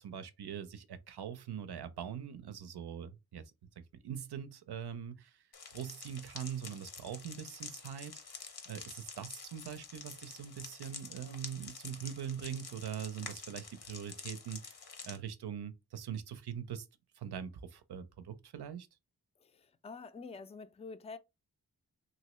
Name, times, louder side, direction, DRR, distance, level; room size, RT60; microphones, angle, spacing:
voice 1, 0.0-3.5 4.0-5.4 5.7-16.9 17.2-18.9, right 8 dB, 80° right, 0.5 m, -42 dB
sound 1, 5.5-15.2, left 5 dB, 75° left, 0.8 m, -48 dB
voice 2, 19.4-21.2, left 4 dB, 15° left, 0.4 m, -47 dB
3.0 x 2.7 x 3.0 m
cardioid pair, 50°, 39 cm